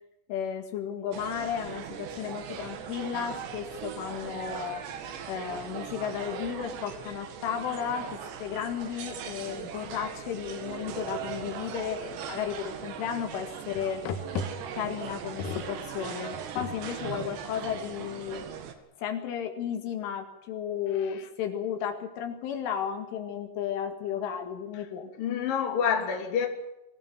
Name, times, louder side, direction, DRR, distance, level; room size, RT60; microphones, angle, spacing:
voice 1, 0.3-4.8 5.3-8.1 8.4-14.0 14.8-18.5 19.0-25.1, left 8 dB, 80° left, 4.5 m, -34 dB
sound 1, 1.1-18.7, right 8 dB, 70° right, 4.1 m, -39 dB
sound 2, 2.3-2.4 2.8-3.7 4.2-4.3 5.2-5.4 5.7-5.8 6.3-6.4 6.7-6.8 7.7-7.8 8.5-8.9 9.2-9.5 9.8-10.5 11.0-12.3 12.6-13.4 13.8-18.2 18.6-19.0, left 4 dB, 65° left, 2.2 m, -41 dB
voice 2, 20.9-21.3 24.7-24.8 25.2-26.5, left 7 dB, 50° left, 4.2 m, -28 dB
24.0 x 16.5 x 7.7 m
omnidirectional pair, 5.5 m